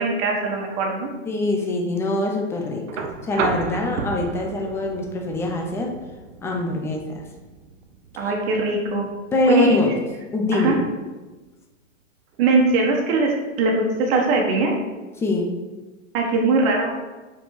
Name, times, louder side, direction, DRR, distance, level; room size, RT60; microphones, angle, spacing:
voice 1, 0.0-1.1 8.2-9.1 9.5-9.8 10.5-10.8 12.4-13.3 13.6-14.7 16.1-17.0, right 3 dB, 50° right, 0 dB, 1.5 m, -21 dB
voice 2, 1.3-5.9 6.4-7.2 9.3-9.9 10.3-10.8 15.2-15.5, left 2 dB, 5° left, 1 dB, 0.5 m, -23 dB
sound 1, 2.9-10.9 12.3-12.4, right 5 dB, 70° right, 0.9 m, -34 dB
5.4 x 4.5 x 4.9 m, 1.2 s
hypercardioid pair, 140°, 39 cm